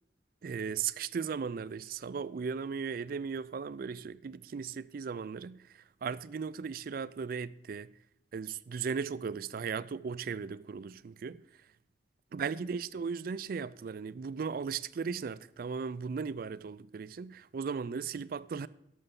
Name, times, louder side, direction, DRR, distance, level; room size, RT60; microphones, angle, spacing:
voice 1, 0.4-7.9 8.3-11.7 12.3-18.7, right 6 dB, 50° right, 0.3 m, -37 dB
11.0 x 7.0 x 5.3 m
head